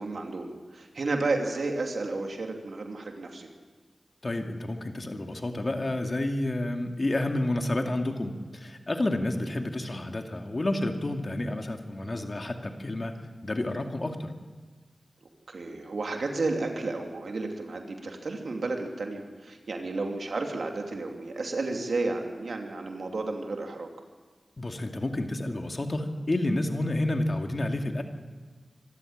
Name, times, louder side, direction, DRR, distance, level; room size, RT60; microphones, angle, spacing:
voice 1, 0.0-3.5 9.3-9.5 15.5-23.9, right 3 dB, 80° right, 3 dB, 2.8 m, -32 dB
voice 2, 4.2-13.1 13.4-14.3 24.6-28.0, left 1 dB, 45° left, 4 dB, 2.3 m, -30 dB
25.0 x 13.5 x 8.8 m, 1.4 s
wide cardioid pair, 60°, 0 cm